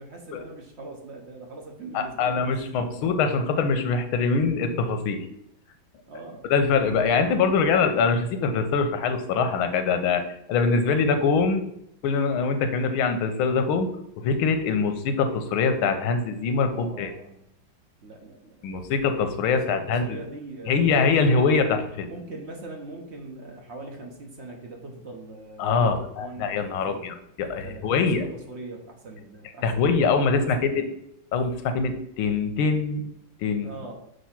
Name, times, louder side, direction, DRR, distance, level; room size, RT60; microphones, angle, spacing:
voice 1, 0.0-2.6 2.8-3.2 6.1-6.5 16.6-17.4 18.0-18.7 19.4-21.0 22.1-27.0 27.4-30.0 30.4-30.9 33.6-34.0, right 2 dB, 55° right, 2 dB, 0.7 m, -41 dB
voice 2, 1.9-5.2 6.5-10.2 10.5-11.7 12.0-13.9 14.2-17.1 18.6-20.2 20.7-22.1 25.6-28.3 29.6-30.8 31.3-33.1 33.4-33.7, left 4 dB, 90° left, 8 dB, 1.6 m, -23 dB
6.4 x 2.9 x 5.7 m, 0.75 s
omnidirectional pair, 2.2 m